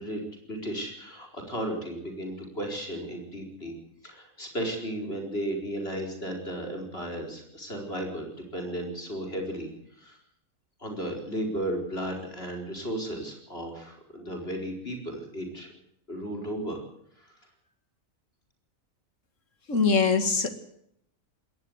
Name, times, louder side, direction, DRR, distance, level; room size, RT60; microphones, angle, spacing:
voice 1, 0.0-3.7 4.0-9.7 10.0-10.2 10.8-15.7 16.1-16.8, right 1 dB, 45° left, 2 dB, 4.9 m, -34 dB
voice 2, 19.7-20.5, left 4 dB, 60° left, 9 dB, 2.5 m, -22 dB
20.5 x 18.0 x 8.1 m, 0.73 s
omnidirectional pair, 1.5 m